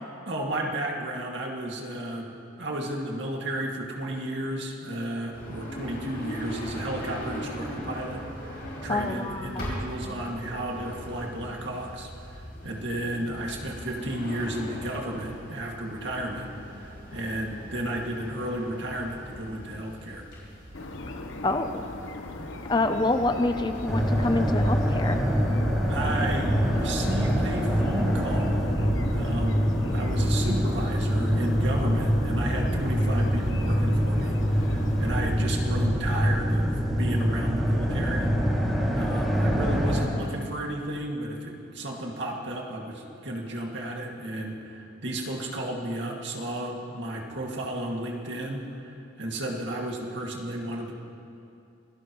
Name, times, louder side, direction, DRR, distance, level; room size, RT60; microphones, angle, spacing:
voice 1, 0.3-2.3 2.6-8.5 8.8-20.3 25.9-28.7 29.1-29.6 29.9-38.6 38.9-50.9, right 1 dB, 65° right, -1 dB, 2.2 m, -33 dB
sound 1, 5.3-24.3, equal, 50° left, 5.2 m, -40 dB
voice 2, 8.9-9.7 21.1-21.8 22.6-25.2, left 2 dB, 20° left, 7 dB, 0.5 m, -27 dB
sound 2, 20.7-35.1, left 2 dB, 80° left, 1.1 m, -38 dB
sound 3, 23.9-40.0, equal, ahead, 2.5 m, -25 dB
26.0 x 18.0 x 3.1 m, 2.7 s
head